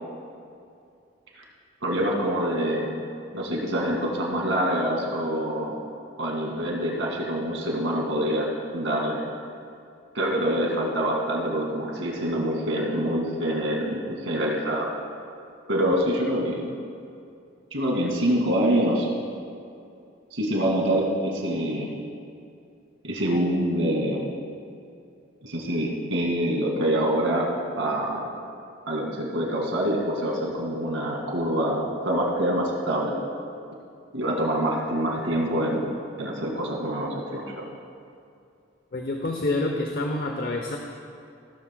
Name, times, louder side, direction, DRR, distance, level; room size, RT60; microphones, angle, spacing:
voice 1, 1.8-2.9 3.3-5.8 6.2-9.2 10.1-14.9 15.7-16.7 17.7-19.1 20.3-21.9 23.0-24.3 25.4-27.5 27.8-28.3 28.9-33.2 34.1-35.9 36.2-37.7, equal, 75° right, -1 dB, 2.2 m, -25 dB
voice 2, 38.9-40.8, left 2 dB, 50° left, 2 dB, 0.7 m, -27 dB
16.5 x 13.0 x 2.2 m, 2.5 s
head